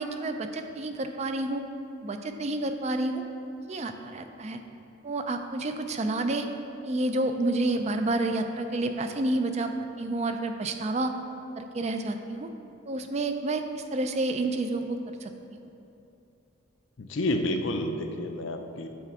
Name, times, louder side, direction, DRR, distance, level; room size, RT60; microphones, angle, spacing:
voice 1, 0.0-1.6 2.0-3.2 3.7-4.6 5.0-6.5 6.8-9.7 10.0-11.1 11.6-12.5 12.9-15.3, right 2 dB, 30° right, 7 dB, 0.4 m, -29 dB
voice 2, 17.0-18.9, left 1 dB, 65° left, 6 dB, 0.5 m, -29 dB
9.1 x 3.4 x 5.9 m, 2.8 s
head